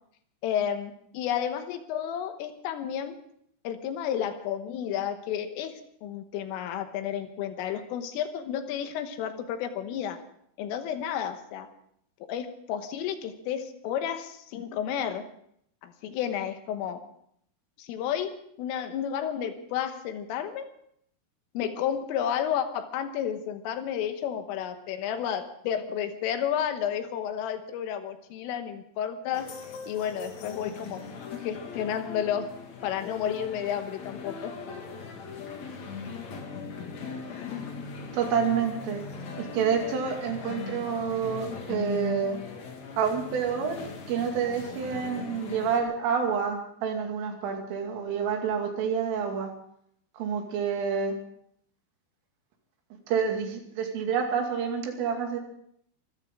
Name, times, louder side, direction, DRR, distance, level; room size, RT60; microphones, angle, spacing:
voice 1, 0.4-3.2 3.7-5.7 6.0-10.2 10.6-11.7 12.3-15.2 15.8-17.0 17.8-18.3 18.6-20.6 21.6-29.5 29.9-31.0 31.4-32.5 32.8-34.6, left 9 dB, 80° left, 8 dB, 3.7 m, -31 dB
sound 1, 29.3-45.8, left 5 dB, 50° left, 2.3 m, -39 dB
voice 2, 38.1-39.0 39.4-42.4 43.0-43.8 44.1-49.5 50.2-51.1 53.1-55.4, right 6 dB, 75° right, 3 dB, 4.8 m, -28 dB
25.0 x 14.0 x 3.8 m, 0.69 s
omnidirectional pair, 5.9 m